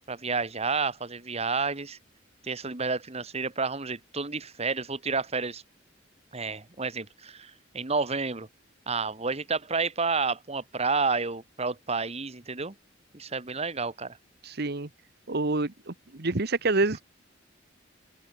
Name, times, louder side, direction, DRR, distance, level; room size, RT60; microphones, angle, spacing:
voice 1, 0.1-2.0 2.4-5.6 6.3-8.5 8.9-12.7 13.1-14.2, right 4 dB, 35° right, 1.7 m, -30 dB
voice 2, 14.4-14.9 15.3-17.0, right 2 dB, 55° right, 1.4 m, -27 dB
open air
head